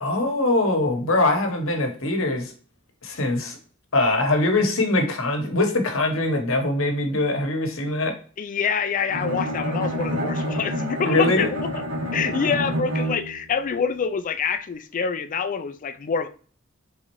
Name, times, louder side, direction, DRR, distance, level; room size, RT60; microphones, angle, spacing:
voice 1, 0.0-2.5 3.0-3.6 3.9-8.1 11.0-11.5, left 2 dB, 70° left, 1.0 m, -22 dB
voice 2, 8.4-11.7 12.1-16.3, left 6 dB, 40° left, 0.4 m, -26 dB
Bowed string instrument, 9.1-13.5, equal, 75° right, 1.8 m, -28 dB
4.1 x 3.7 x 3.0 m
head